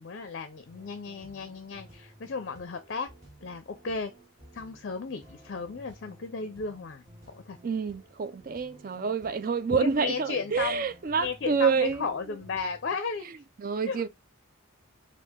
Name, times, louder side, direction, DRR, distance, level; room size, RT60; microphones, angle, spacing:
voice 1, 0.0-3.1 3.4-4.1 4.5-7.6 8.9-9.1 9.7-10.9 11.2-13.3 13.9-14.0, left 4 dB, 50° left, 0.5 m, -35 dB
sound 1, 0.6-13.0, right 1 dB, 15° right, 2.6 m, -54 dB
voice 2, 7.6-12.1 13.6-14.1, right 5 dB, 40° right, 0.4 m, -28 dB
4.5 x 2.4 x 3.6 m
head